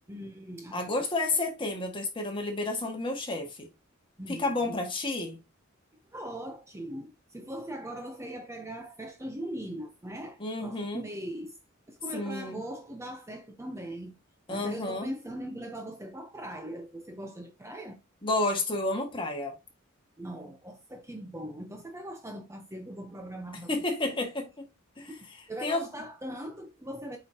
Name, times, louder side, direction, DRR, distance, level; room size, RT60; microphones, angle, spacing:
voice 1, 0.1-1.1 4.2-4.8 6.1-11.6 11.9-14.2 14.5-18.0 20.2-23.8 24.1-24.2 25.1-27.2, right 1 dB, 15° right, 0.9 m, -40 dB
voice 2, 0.7-3.7 4.3-5.4 10.4-11.0 12.1-12.6 14.5-15.1 18.2-19.6 23.7-24.7 25.0-25.1 25.6-25.9, left 2 dB, 25° left, 1.9 m, -31 dB
7.9 x 5.1 x 2.9 m
head